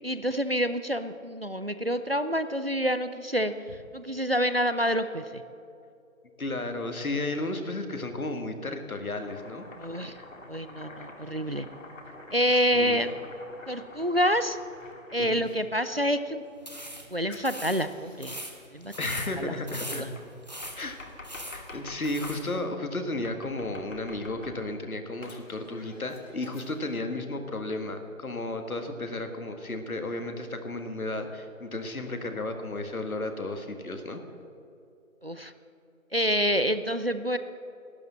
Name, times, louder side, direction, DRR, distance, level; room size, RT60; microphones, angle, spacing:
voice 1, 0.0-3.5 3.9-5.4 9.8-10.2 10.5-11.7 12.3-13.1 13.7-14.6 15.1-16.4 17.1-18.4 18.7-18.9 19.4-19.6 19.9-20.1 35.2-35.5 36.1-37.4, equal, 45° right, 11 dB, 0.5 m, -27 dB
voice 2, 6.4-9.7 12.5-13.0 15.2-15.4 19.0-20.0 20.8-21.0 21.5-34.2, left 2 dB, 80° left, 6 dB, 1.8 m, -33 dB
Domestic sounds home sounds, 9.2-15.6 17.3-18.4 20.2-22.4 23.2-24.8 25.2-27.0, left 2 dB, 65° left, 2.2 m, -47 dB
sound 1, 16.6-22.5, equal, 30° left, 0.9 m, -41 dB
12.0 x 10.5 x 7.4 m, 2.6 s
figure-of-eight pair, 175°, 42 cm